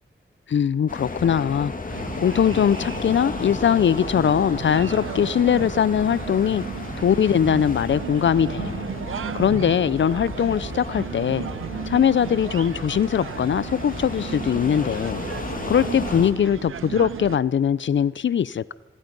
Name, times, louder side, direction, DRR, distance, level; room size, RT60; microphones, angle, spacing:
voice 1, 0.5-1.7 2.2-6.6 7.0-8.8 9.3-11.5 11.9-15.2 15.7-18.7, left 8 dB, 65° left, 19 dB, 0.6 m, -21 dB
sound 1, 0.9-16.3, left 3 dB, 40° left, 2.6 m, -34 dB
sound 2, 1.9-17.4, right 8 dB, 80° right, 1.0 m, -34 dB
26.5 x 21.5 x 5.4 m, 1.2 s
wide cardioid pair, 80°, 21 cm